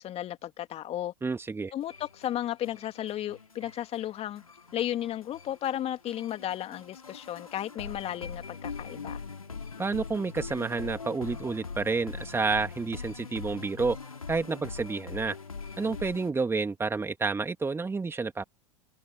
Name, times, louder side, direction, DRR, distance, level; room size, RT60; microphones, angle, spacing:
voice 1, 0.0-1.1 1.7-4.4 4.7-9.2, left 12 dB, 35° left, 2.6 m, -34 dB
voice 2, 1.2-1.7 9.8-14.0 14.3-15.4 15.8-18.4, right 4 dB, 15° right, 2.7 m, -30 dB
sound 1, 1.8-16.3, left 5 dB, 90° left, 2.9 m, -42 dB
figure-of-eight pair, 90°, 17 cm